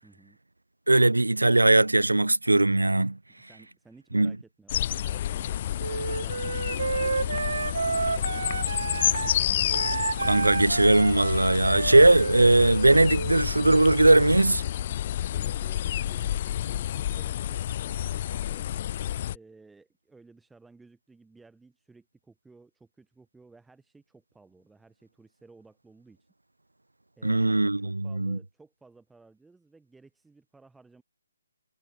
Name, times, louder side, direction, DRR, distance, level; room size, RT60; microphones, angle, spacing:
voice 1, 0.0-0.4 3.3-9.4 15.2-18.7 19.3-26.3 27.2-31.0, right 3 dB, 5° right, 6.0 m, -56 dB
voice 2, 0.9-3.2 4.1-4.4 10.2-14.7 27.2-28.4, right 2 dB, 75° right, 0.3 m, -20 dB
Hot Day Insect Air with Birds, 4.7-19.4, left 11 dB, 30° left, 0.3 m, -30 dB
Wind instrument woodwind instrument, 5.8-9.4 9.7-13.5, right 4 dB, 55° right, 2.4 m, -31 dB
figure-of-eight pair, 145°, 0 cm